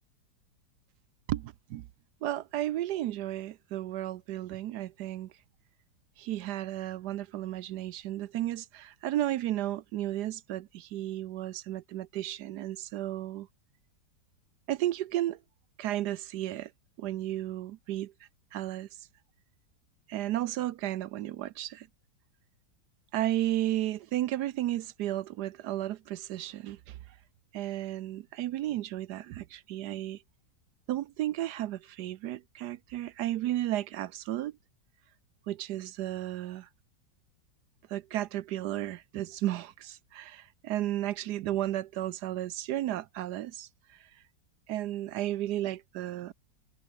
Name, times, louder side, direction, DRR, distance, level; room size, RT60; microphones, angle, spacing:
voice 1, 1.3-1.9 2.2-5.3 6.2-13.5 14.7-15.4 15.8-16.7 17.0-18.1 18.5-19.1 20.1-21.9 23.1-27.0 27.5-30.2 30.9-34.5 35.5-36.7 37.9-44.1 44.7-46.3, right 13 dB, 70° right, 1.1 m, -33 dB
omnidirectional pair, 1.9 m